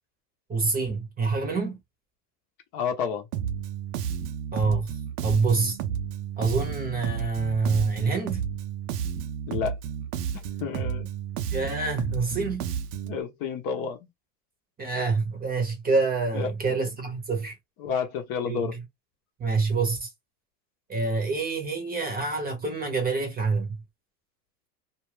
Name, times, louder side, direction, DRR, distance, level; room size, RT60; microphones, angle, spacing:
voice 1, 0.5-1.8 4.5-4.9 5.2-5.8 6.4-8.5 11.5-12.7 14.8-17.6 18.4-18.8 19.4-20.1 20.9-23.8, right 4 dB, 20° right, 0.8 m, -26 dB
voice 2, 2.7-3.2 9.5-9.8 10.6-11.1 13.1-14.0 16.3-16.5 17.8-18.7, left 7 dB, 45° left, 0.8 m, -30 dB
Bass guitar, 3.3-13.2, right 8 dB, 65° right, 0.7 m, -32 dB
2.4 x 2.2 x 3.2 m
hypercardioid pair, 110°, 50 cm